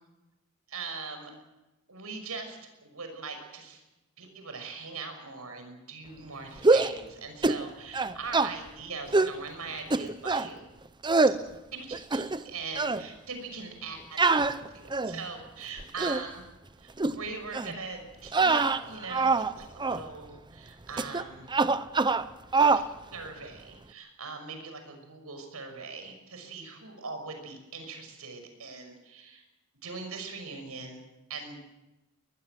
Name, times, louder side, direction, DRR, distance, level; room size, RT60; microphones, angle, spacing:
voice 1, 0.7-1.3 1.9-3.8 4.2-10.6 11.7-11.9 12.1-16.4 16.8-21.5 22.7-22.8 23.1-29.4 29.8-31.0 31.3-31.6, right 4 dB, 80° right, 6 dB, 6.0 m, -41 dB
sound 1, 6.6-7.0 7.4-7.6 7.9-8.5 9.1-9.4 9.9-10.5 11.0-11.4 11.9-12.5 12.8-13.0 14.2-15.2 15.8-16.2 17.0-17.2 17.5-17.8 18.3-19.5 19.8-20.0 21.0-21.2 21.5-22.3 22.5-22.9, right 3 dB, 20° right, 0.7 m, -24 dB
23.5 x 20.0 x 7.6 m, 1.0 s
head